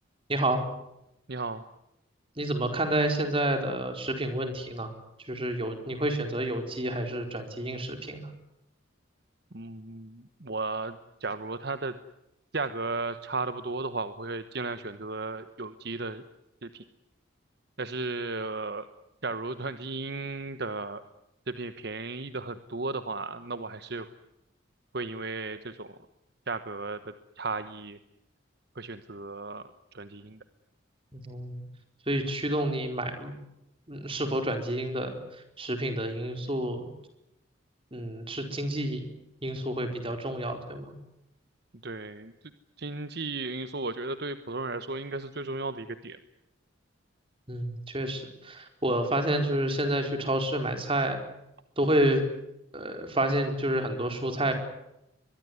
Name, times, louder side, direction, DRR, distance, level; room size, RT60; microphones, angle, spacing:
voice 1, 0.3-0.6 2.4-4.9 5.3-8.3 31.1-31.6 32.1-33.3 33.9-35.2 35.6-36.9 37.9-39.1 39.4-40.9 47.5-51.2 51.8-52.2 52.7-54.5, right 1 dB, 25° right, 6 dB, 4.6 m, -29 dB
voice 2, 1.3-1.6 9.5-12.0 12.5-16.3 16.6-16.8 17.8-18.9 19.2-21.0 21.5-24.1 24.9-25.9 26.5-28.0 28.7-30.4 41.8-42.3 42.8-46.2, right 3 dB, 55° right, 11 dB, 1.2 m, -35 dB
24.0 x 22.0 x 9.6 m, 0.84 s
head